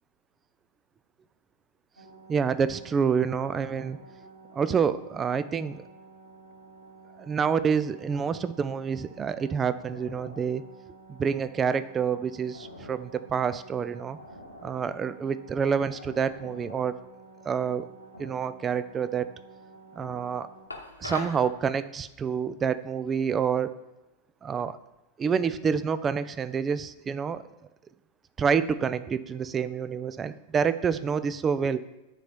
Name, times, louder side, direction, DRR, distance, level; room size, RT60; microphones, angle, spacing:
sound 1, 2.0-20.7, right 1 dB, 85° right, 1.2 m, -49 dB
voice 1, 2.3-4.0 4.5-5.8 7.2-10.6 11.1-14.2 14.6-17.0 17.4-17.9 18.2-19.3 20.0-20.5 21.0-23.8 24.4-24.8 25.2-27.4 28.4-31.8, right 6 dB, 20° right, 15 dB, 0.4 m, -27 dB
sound 2, 20.7-21.4, left 2 dB, 85° left, 1.1 m, -37 dB
9.0 x 4.2 x 5.1 m, 1.0 s
figure-of-eight pair, 90°, 0 cm